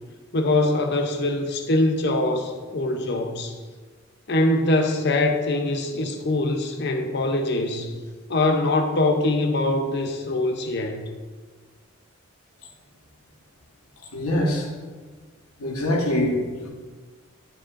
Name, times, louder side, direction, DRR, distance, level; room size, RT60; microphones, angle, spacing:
voice 1, 0.3-3.5 4.3-7.9 8.3-11.0, left 2 dB, 50° left, 5 dB, 0.7 m, -23 dB
voice 2, 14.1-14.7 15.6-16.7, left 1 dB, 90° left, 0 dB, 1.3 m, -24 dB
11.0 x 4.9 x 2.5 m, 1.4 s
head